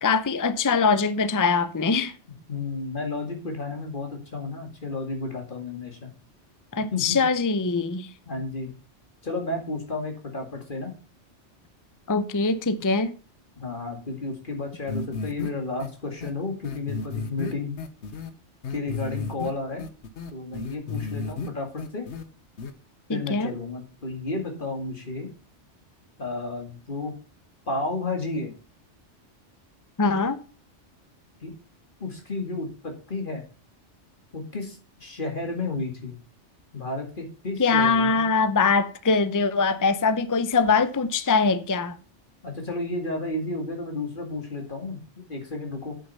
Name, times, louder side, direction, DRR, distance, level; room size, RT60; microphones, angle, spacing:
voice 1, 0.0-2.1 6.7-8.1 12.1-13.1 23.1-23.5 30.0-30.4 37.6-41.9, left 4 dB, 20° left, 0.6 m, -22 dB
voice 2, 2.5-6.1 6.9-7.2 8.3-8.7 9.2-10.9 13.6-17.8 18.7-19.9 20.3-22.1 23.1-25.3 26.2-27.1 27.7-28.5 31.4-31.5 32.0-33.4 34.3-36.2 36.7-38.2 42.4-45.0 45.3-46.0, left 3 dB, 45° left, 2.3 m, -32 dB
sound 1, 14.9-15.5 15.8-15.9 16.2-16.3 16.6-18.3 18.6-19.5 19.8-21.5 21.8-22.2 22.6-22.7, left 4 dB, 70° left, 1.3 m, -33 dB
8.7 x 6.5 x 5.6 m
omnidirectional pair, 1.2 m